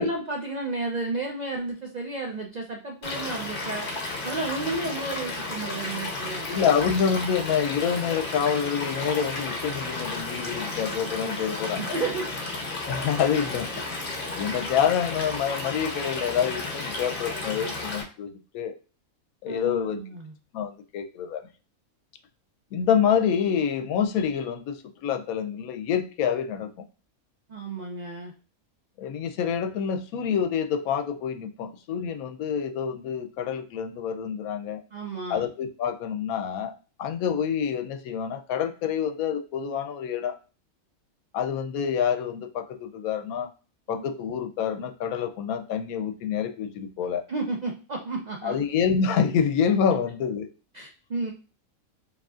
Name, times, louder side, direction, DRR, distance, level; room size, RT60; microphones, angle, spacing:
voice 1, 0.0-3.8 4.2-6.5 11.8-12.3 19.5-20.3 27.5-28.3 34.9-35.4 43.9-44.0 47.3-48.6 50.7-51.3, right 3 dB, 80° right, 1 dB, 0.3 m, -32 dB
Stream / Liquid, 3.0-18.0, left 2 dB, 45° left, 0.9 m, -33 dB
voice 2, 6.5-11.9 12.9-13.7 14.4-18.7 19.4-20.0 20.5-21.4 22.7-26.7 29.0-34.8 35.3-36.7 37.0-40.4 41.3-43.5 43.9-47.2 48.4-50.5, left 7 dB, 80° left, 6 dB, 1.0 m, -27 dB
4.8 x 2.9 x 2.4 m, 0.36 s
omnidirectional pair, 1.5 m